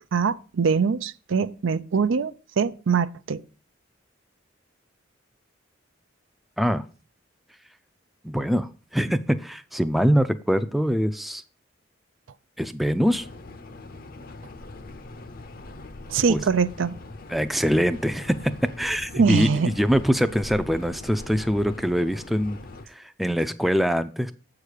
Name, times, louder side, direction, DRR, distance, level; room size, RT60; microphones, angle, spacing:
voice 1, 0.1-3.4 16.1-17.0 19.1-19.7, right 5 dB, 90° right, 0.5 m, -23 dB
voice 2, 8.2-11.4 12.6-13.3 16.3-16.4 17.3-18.3 18.8-22.6 23.0-24.3, equal, ahead, 0.4 m, -23 dB
sound 1, 13.1-22.9, left 2 dB, 50° left, 0.7 m, -41 dB
7.6 x 4.9 x 6.4 m
head